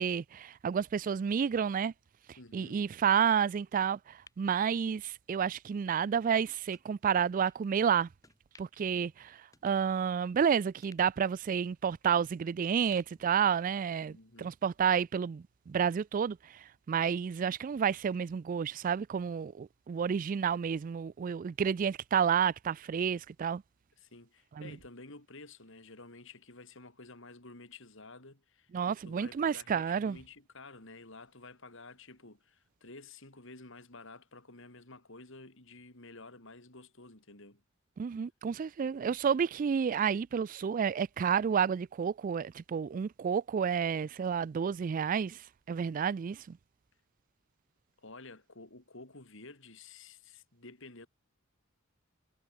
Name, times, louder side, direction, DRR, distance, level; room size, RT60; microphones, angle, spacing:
voice 1, 0.0-1.9 2.5-8.1 8.6-23.6 24.6-24.7 28.7-30.2 38.0-46.6, right 7 dB, 40° right, 0.3 m, -30 dB
voice 2, 2.4-2.8 8.7-9.1 14.1-14.6 24.0-37.6 48.0-51.1, left 3 dB, 65° left, 4.5 m, -51 dB
sound 1, 3.8-5.4 5.8-5.9 6.7-6.9 7.5-7.6 8.2-8.9 9.2-9.3 9.5-10.4 10.8-12.4 12.8-14.0 14.3-14.4, left 3 dB, 15° left, 4.9 m, -62 dB
head